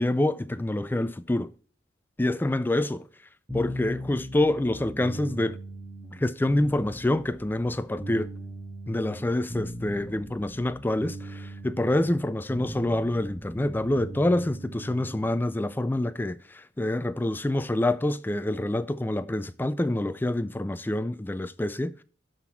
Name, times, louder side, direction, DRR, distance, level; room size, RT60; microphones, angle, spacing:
voice 1, 0.0-1.5 2.2-3.0 3.5-5.6 6.2-8.3 8.9-22.0, left 1 dB, 10° left, 0.3 m, -27 dB
sound 1, 3.5-15.4, equal, 10° right, 1.7 m, -39 dB
12.0 x 4.0 x 4.2 m
head